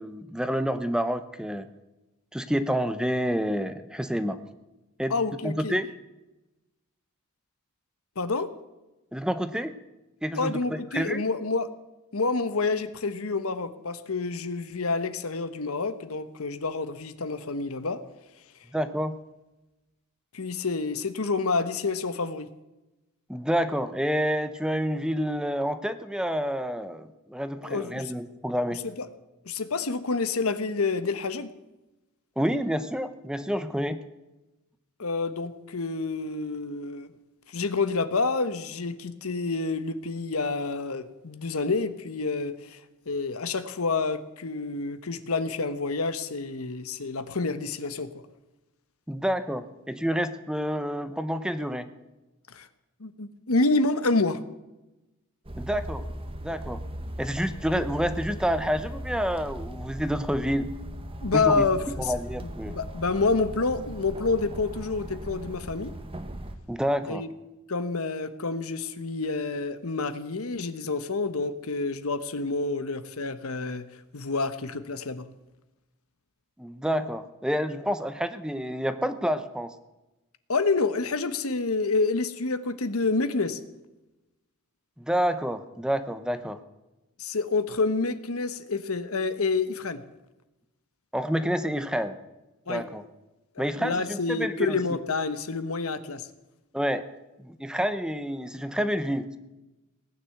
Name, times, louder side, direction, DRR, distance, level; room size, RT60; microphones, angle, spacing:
voice 1, 0.0-1.7 2.3-4.4 5.0-5.1 5.4-5.9 9.1-9.7 10.2-11.2 18.7-19.1 23.3-28.8 32.4-34.0 49.1-51.9 55.6-56.0 56.4-56.8 57.2-60.7 61.3-62.8 66.7-67.2 76.6-79.7 85.0-86.6 91.1-92.2 92.7-93.0 93.6-94.8 96.7-97.0 97.4-99.4, equal, 5° right, 11 dB, 0.8 m, -28 dB
voice 2, 5.1-5.8 8.2-8.5 10.3-11.7 12.1-18.0 20.3-22.5 27.6-28.1 29.0-29.1 29.4-31.5 35.0-37.1 37.5-42.8 43.1-48.2 52.5-52.7 53.0-54.4 61.2-62.1 62.4-65.9 67.1-67.3 67.7-73.9 74.1-75.3 80.5-83.6 87.2-90.0 92.7-92.8 93.6-96.3, left 3 dB, 80° left, 12 dB, 1.1 m, -28 dB
sound 1, 55.5-66.5, right 1 dB, 25° right, 1.2 m, -38 dB
18.5 x 9.7 x 7.9 m, 1.0 s
head